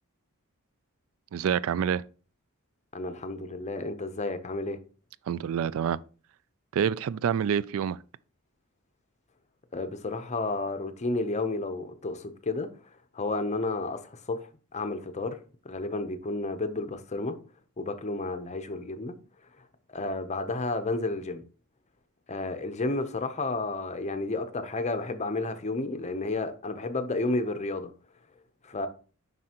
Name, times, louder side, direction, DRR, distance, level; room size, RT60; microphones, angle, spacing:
voice 1, 1.3-2.0 5.3-6.0 6.7-8.0, right 8 dB, 65° right, 0.3 m, -27 dB
voice 2, 2.9-4.8 9.7-12.7 13.1-15.4 15.6-17.4 17.8-19.1 19.9-21.4 22.3-27.9 28.6-28.9, left 2 dB, 30° left, 0.6 m, -31 dB
7.5 x 5.4 x 2.9 m
head